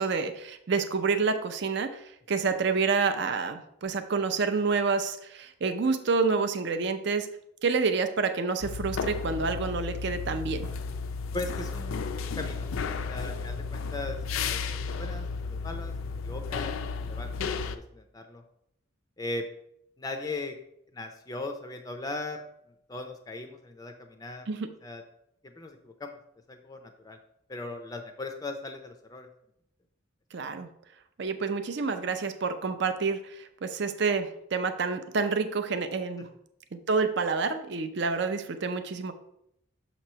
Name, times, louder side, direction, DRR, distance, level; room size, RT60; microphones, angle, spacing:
voice 1, 0.0-7.3 7.6-10.7 24.5-24.7 30.3-30.7 31.2-36.3 36.9-39.1, right 4 dB, 55° right, 9 dB, 0.5 m, -28 dB
sound 1, 8.6-17.8, left 5 dB, 80° left, 0.4 m, -33 dB
voice 2, 11.3-12.0 12.4-14.6 15.0-15.9 16.2-16.7 17.0-18.4 19.2-19.4 20.0-20.6 20.9-22.4 22.9-24.5 24.8-25.0 25.4-26.2 26.5-27.2 27.5-29.3 36.2-36.3, left 2 dB, 20° left, 5 dB, 0.4 m, -38 dB
6.7 x 3.0 x 5.5 m, 0.76 s
head